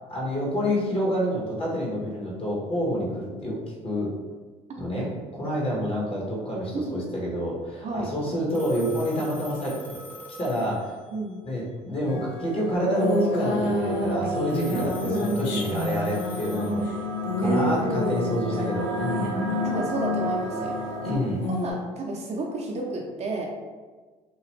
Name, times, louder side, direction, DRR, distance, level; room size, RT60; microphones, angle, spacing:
voice 1, 0.1-3.6 3.8-4.1 4.8-10.0 10.4-11.0 11.4-16.9 17.4-19.3 21.0-21.4, equal, 35° left, -4 dB, 1.3 m, -28 dB
Telephone, 8.5-11.4 14.5-17.3, equal, 10° left, 0.9 m, -43 dB
sound 1, 12.0-21.7, left 1 dB, 75° left, 0.7 m, -30 dB
sound 2, 12.7-15.2 16.2-21.1, left 1 dB, 65° right, 0.9 m, -31 dB
voice 2, 14.7-15.3 17.4-18.3 19.6-20.8 21.1-23.5, right 2 dB, 40° right, 0 dB, 0.6 m, -31 dB
2.9 x 2.4 x 3.0 m, 1.4 s
hypercardioid pair, 60°, 17 cm